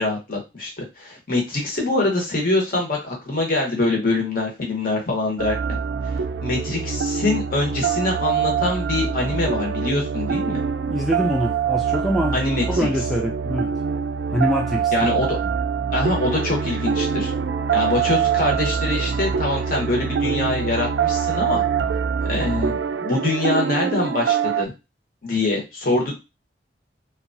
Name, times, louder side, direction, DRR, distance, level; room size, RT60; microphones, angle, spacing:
voice 1, 0.0-5.8 6.4-10.6 12.3-12.9 14.9-15.4 15.9-17.3 17.7-21.6 22.3-24.7 25.2-26.1, left 2 dB, 55° left, 0 dB, 1.0 m, -24 dB
sound 1, 5.4-24.7, right 7 dB, 80° right, 0.3 m, -24 dB
voice 2, 10.9-12.4 12.7-13.7 14.3-14.9 15.4-15.6 25.9-26.0, equal, ahead, -1 dB, 0.3 m, -24 dB
2.8 x 2.3 x 2.5 m, 0.26 s
head